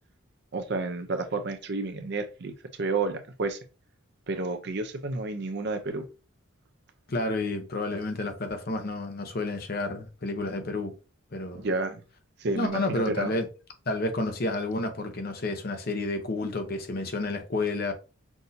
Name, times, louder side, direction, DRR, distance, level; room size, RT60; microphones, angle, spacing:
voice 1, 0.5-2.5 2.8-3.6 4.3-6.1 11.5-12.0 12.4-13.3, right 3 dB, 50° right, 0.6 m, -30 dB
voice 2, 7.1-10.9 11.3-11.6 12.5-13.5 13.9-17.9, left 2 dB, 45° left, 0.8 m, -30 dB
5.9 x 2.7 x 2.6 m
head